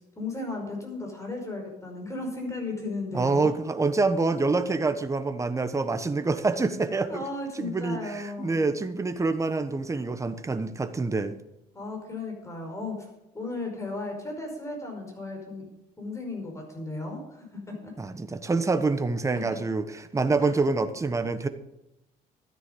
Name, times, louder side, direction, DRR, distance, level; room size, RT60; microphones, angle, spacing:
voice 1, 0.0-3.5 7.1-8.6 11.7-13.1 13.3-15.7 16.0-17.9 19.3-19.5 20.4-20.6, left 2 dB, 15° left, 1 dB, 5.3 m, -35 dB
voice 2, 3.1-7.2 7.6-11.3 18.0-21.5, right 3 dB, 20° right, 10 dB, 1.1 m, -26 dB
13.0 x 9.7 x 5.4 m, 0.91 s
cardioid pair, 110°, 17 cm